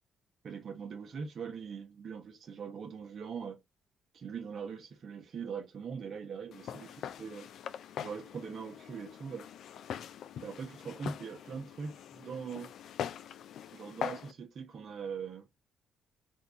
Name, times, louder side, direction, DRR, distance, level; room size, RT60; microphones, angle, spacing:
voice 1, 0.4-3.6 4.1-7.5 8.0-9.5 10.4-12.7 13.7-15.4, right 6 dB, 55° right, 0.7 m, -41 dB
Walk footsteps, 6.5-14.3, left 9 dB, 70° left, 0.3 m, -42 dB
2.6 x 2.2 x 3.6 m
cardioid pair, 90°, 0 cm